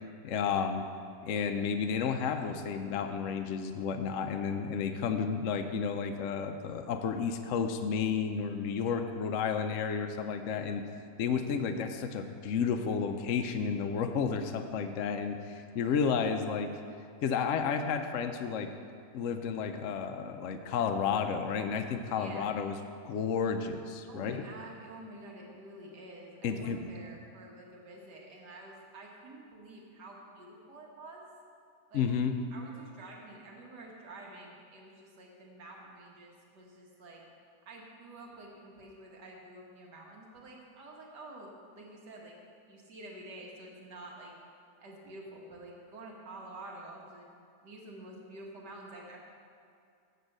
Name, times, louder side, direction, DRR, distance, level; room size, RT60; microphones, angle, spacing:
voice 1, 0.2-0.9 1.2-10.8 11.2-16.7 17.2-18.7 19.1-22.8 23.0-24.4 26.4-26.9 31.9-32.3, left 6 dB, 70° left, 7 dB, 0.7 m, -32 dB
voice 2, 22.1-22.5 24.1-31.3 31.9-32.1 32.5-37.2 37.7-42.4 42.7-44.4 44.8-47.3 47.6-49.2, right 2 dB, 80° right, -1 dB, 1.8 m, -49 dB
8.0 x 7.5 x 6.5 m, 2.3 s
omnidirectional pair, 1.8 m